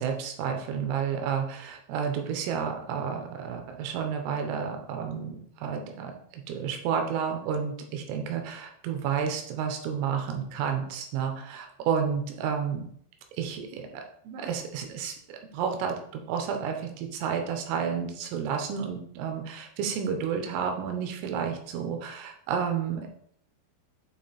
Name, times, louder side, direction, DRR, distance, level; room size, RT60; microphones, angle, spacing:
voice 1, 0.0-12.9 13.4-15.1 15.5-23.1, right 7 dB, 90° right, 4 dB, 3.5 m, -31 dB
8.5 x 3.1 x 4.3 m, 0.65 s
omnidirectional pair, 5.7 m